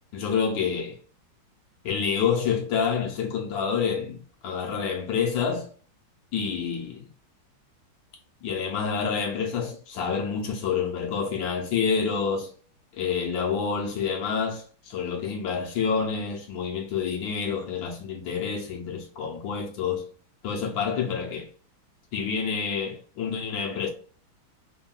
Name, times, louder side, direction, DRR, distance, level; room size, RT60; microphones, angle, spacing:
voice 1, 0.1-1.0 1.8-5.7 6.3-7.1 8.4-12.5 12.9-20.0 20.4-21.5 22.1-23.9, left 6 dB, 75° left, 1.3 m, -28 dB
3.5 x 2.2 x 2.2 m
omnidirectional pair, 2.2 m